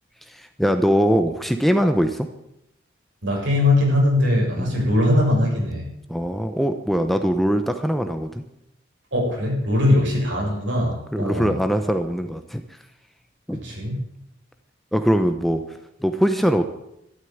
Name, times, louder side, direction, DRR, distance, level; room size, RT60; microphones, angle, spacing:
voice 1, 0.3-2.3 4.6-4.8 6.1-8.4 11.1-12.6 13.5-13.6 14.9-16.6, equal, ahead, 7 dB, 0.8 m, -22 dB
voice 2, 3.2-5.9 9.1-11.6 13.5-14.0, left 1 dB, 75° right, -2 dB, 7.3 m, -21 dB
13.0 x 11.5 x 9.5 m, 0.83 s
head